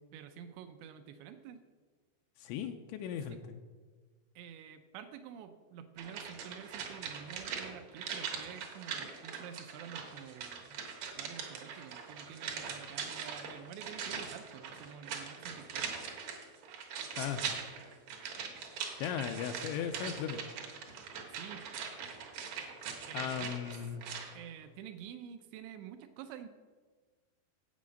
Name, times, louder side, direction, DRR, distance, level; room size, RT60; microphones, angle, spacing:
voice 1, 0.1-1.6 3.3-3.5 4.4-10.8 11.1-16.0 21.3-21.7 23.1-24.0 24.3-26.5, right 8 dB, 80° right, 8 dB, 2.7 m, -49 dB
voice 2, 2.4-3.6 17.2-17.4 19.0-20.5 23.1-24.1, left 9 dB, 85° left, 6 dB, 2.8 m, -37 dB
sound 1, 6.0-24.3 24.6-24.7, right 6 dB, 65° right, 2.1 m, -42 dB
8.5 x 8.1 x 6.3 m, 1.4 s
omnidirectional pair, 5.3 m